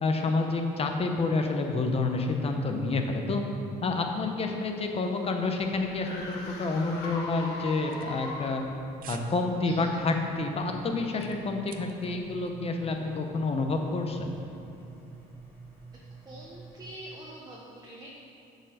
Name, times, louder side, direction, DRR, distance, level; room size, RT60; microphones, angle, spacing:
voice 1, 0.0-3.4 3.8-8.6 9.1-14.4, left 3 dB, 35° left, 4 dB, 0.9 m, -29 dB
sound 1, 4.8-8.8, left 2 dB, 80° left, 1.4 m, -41 dB
sound 2, 7.6-8.7 9.0-9.3 9.7-9.9 10.4-12.2 12.5-12.6, right 9 dB, 55° right, 0.6 m, -48 dB
sound 3, 9.1-16.9, right 3 dB, 15° left, 1.5 m, -48 dB
voice 2, 16.2-18.1, right 1 dB, 25° right, -3 dB, 1.0 m, -45 dB
7.8 x 4.7 x 6.5 m, 2.8 s
cardioid pair, 110°, 17 cm